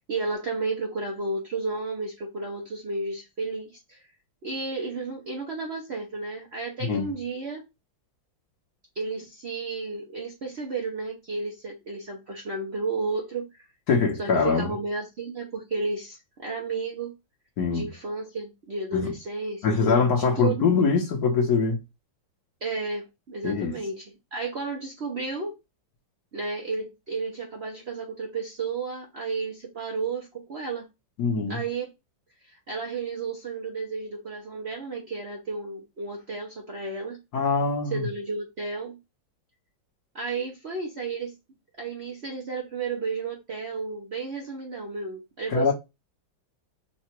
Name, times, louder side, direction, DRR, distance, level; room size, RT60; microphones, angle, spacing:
voice 1, 0.1-4.1 4.4-7.6 8.9-13.7 14.2-17.1 17.7-20.6 22.6-25.6 26.3-30.9 31.5-31.9 32.4-37.2 37.9-39.0 40.1-41.3 41.8-45.7, right 3 dB, 45° right, 0.9 m, -32 dB
voice 2, 6.8-7.1 13.9-14.7 17.6-17.9 18.9-19.1 19.6-21.8 23.4-23.8 31.2-31.6 37.3-38.1 45.5-45.7, left 5 dB, 60° left, 1.4 m, -23 dB
3.9 x 2.4 x 4.3 m
omnidirectional pair, 2.1 m